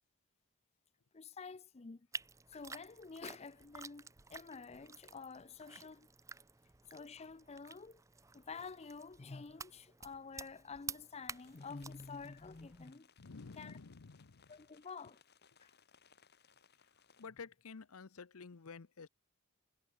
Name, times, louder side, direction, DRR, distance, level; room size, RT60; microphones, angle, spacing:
voice 1, 1.1-2.1 2.5-6.1 6.9-8.0 8.3-13.1 13.6-13.8 14.5-15.2 15.6-15.7, left 4 dB, 30° left, 0.5 m, -49 dB
sound 1, 2.1-12.9, right 5 dB, 15° right, 0.6 m, -51 dB
sound 2, 11.3-17.3, left 6 dB, 50° left, 6.0 m, -67 dB
voice 2, 13.2-14.5 17.2-19.1, left 4 dB, 85° left, 0.8 m, -51 dB
head